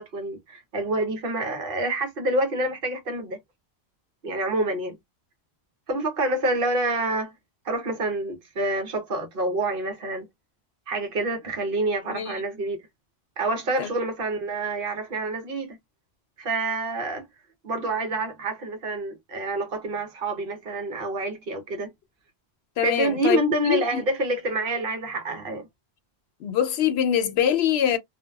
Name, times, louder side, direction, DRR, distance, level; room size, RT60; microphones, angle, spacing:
voice 1, 0.0-3.4 4.2-5.0 5.9-7.3 7.6-10.3 10.9-12.8 13.4-15.8 16.4-17.3 17.6-21.9 22.8-25.7, right 2 dB, 60° right, 0.9 m, -27 dB
voice 2, 12.1-12.4 13.8-13.9 22.8-24.0 26.4-28.0, left 9 dB, 75° left, 0.8 m, -24 dB
2.7 x 2.1 x 2.2 m
omnidirectional pair, 1.1 m